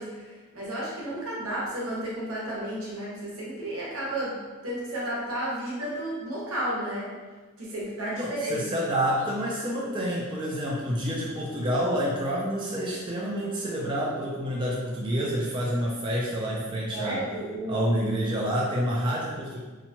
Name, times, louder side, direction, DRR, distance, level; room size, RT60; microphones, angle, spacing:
voice 1, 0.0-7.1 7.6-8.7 16.9-18.0, right 1 dB, 80° right, -5 dB, 0.9 m, -32 dB
voice 2, 8.2-17.2 17.7-19.6, equal, 25° right, -4 dB, 0.3 m, -28 dB
2.8 x 2.1 x 2.7 m, 1.3 s
head